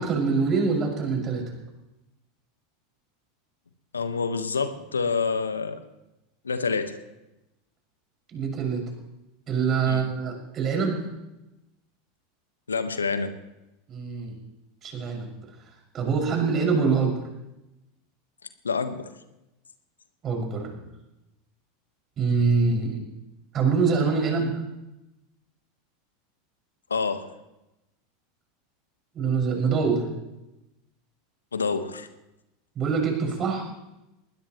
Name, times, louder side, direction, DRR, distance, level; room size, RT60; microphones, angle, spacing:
voice 1, 0.0-1.4 8.3-8.8 9.5-11.0 13.9-14.3 14.8-15.3 15.9-17.1 20.2-20.8 22.2-23.0 23.5-24.6 29.1-30.1 32.7-33.6, right 5 dB, 35° right, 0 dB, 6.1 m, -24 dB
voice 2, 3.9-5.8 6.4-7.0 9.8-10.1 12.7-13.3 18.6-19.1 26.9-27.3 31.5-32.1, left 5 dB, 85° left, 9 dB, 1.3 m, -27 dB
20.5 x 20.5 x 3.1 m, 0.95 s
figure-of-eight pair, 85°, 0 cm